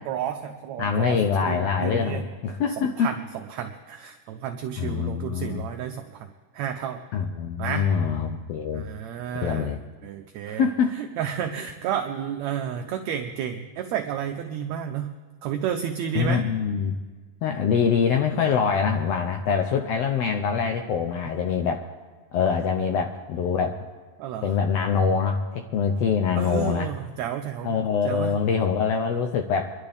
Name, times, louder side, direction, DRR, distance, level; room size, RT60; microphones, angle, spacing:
voice 1, 0.1-2.3 2.8-6.3 6.5-7.0 7.6-7.9 8.7-9.8 10.0-15.1 15.4-16.4 24.2-24.6 26.4-28.3, right 9 dB, 75° right, 5 dB, 1.7 m, -31 dB
voice 2, 0.8-3.1 4.8-5.6 7.1-8.9 9.4-9.8 10.5-11.0 16.1-17.0 17.4-21.8 22.3-23.8 24.4-26.9 27.6-29.7, left 6 dB, 75° left, 5 dB, 1.5 m, -24 dB
25.0 x 11.5 x 3.5 m, 1.4 s
omnidirectional pair, 3.6 m